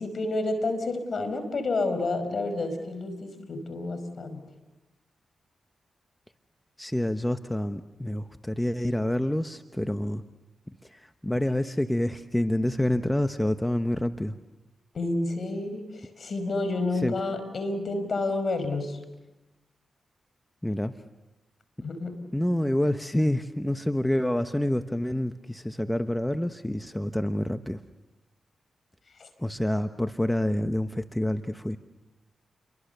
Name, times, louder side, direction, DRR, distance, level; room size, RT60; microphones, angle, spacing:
voice 1, 0.0-4.4 14.9-19.0 21.8-22.1 29.2-29.3, left 2 dB, 60° left, 9 dB, 5.1 m, -29 dB
voice 2, 6.8-10.2 10.8-14.4 17.0-17.2 20.6-20.9 21.8-21.9 22.3-27.8 29.4-31.8, left 1 dB, 10° left, 9 dB, 1.1 m, -27 dB
29.5 x 23.0 x 6.8 m, 1.1 s
cardioid pair, 55°, 0 cm